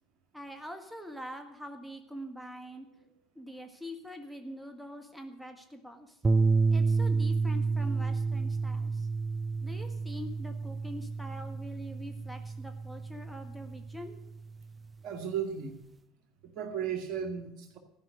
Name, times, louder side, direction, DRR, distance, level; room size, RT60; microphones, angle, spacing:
voice 1, 0.3-2.9 3.3-6.2 6.7-9.1 9.6-14.2, equal, ahead, 5 dB, 1.5 m, -44 dB
sound 1, 6.2-14.6, right 4 dB, 25° right, 0.4 m, -30 dB
voice 2, 15.0-15.8 16.4-17.8, right 8 dB, 55° right, 5 dB, 2.1 m, -35 dB
14.0 x 5.7 x 9.4 m, 0.79 s
hypercardioid pair, 75°, 0 cm